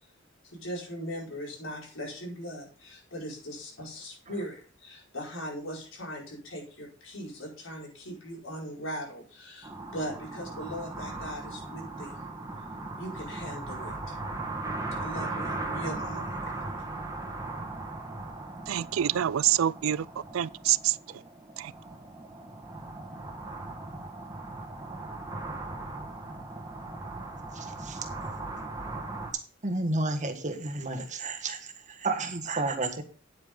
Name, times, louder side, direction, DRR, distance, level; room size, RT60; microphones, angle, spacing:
voice 1, 0.4-12.2 13.0-14.2 15.0-16.4 16.8-16.9, equal, 80° left, 5.3 m, -39 dB
sound 1, 9.6-29.3, right 2 dB, 20° right, 1.6 m, -38 dB
voice 2, 18.7-20.0 20.3-20.9 21.6-21.7, right 11 dB, 85° right, 0.4 m, -26 dB
voice 3, 27.5-28.0 29.6-33.0, right 2 dB, 40° right, 1.5 m, -31 dB
9.8 x 8.5 x 3.8 m
head